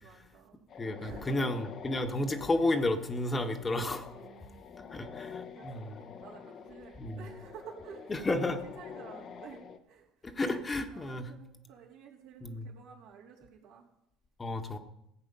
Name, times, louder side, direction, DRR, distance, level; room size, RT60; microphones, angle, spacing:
voice 1, 0.0-0.6 1.0-1.4 4.1-10.1 10.5-13.9, right 7 dB, 70° right, -2 dB, 3.3 m, -52 dB
sound 1, 0.7-9.8, left 6 dB, 50° left, 1.1 m, -47 dB
voice 2, 0.8-4.1 4.9-6.0 7.0-7.2 8.1-8.6 10.2-11.3 12.4-12.7 14.4-14.8, left 2 dB, 25° left, 6 dB, 1.4 m, -32 dB
15.5 x 8.2 x 5.5 m, 0.81 s
hypercardioid pair, 65°, 0 cm